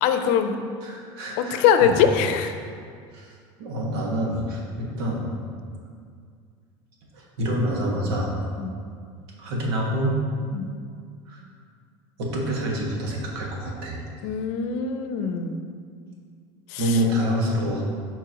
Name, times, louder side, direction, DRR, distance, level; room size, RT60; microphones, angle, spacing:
voice 1, 0.0-0.6 1.4-2.5 8.6-8.8 10.5-10.7 14.2-15.6 16.7-17.0, left 7 dB, 65° left, 8 dB, 0.6 m, -22 dB
voice 2, 0.8-2.0 3.1-3.3 3.6-5.3 7.1-8.4 9.4-10.2 11.3-11.4 12.2-14.0 16.8-17.8, equal, 90° right, -2 dB, 1.7 m, -27 dB
11.5 x 4.4 x 3.0 m, 2.2 s
cardioid pair, 150°, 13 cm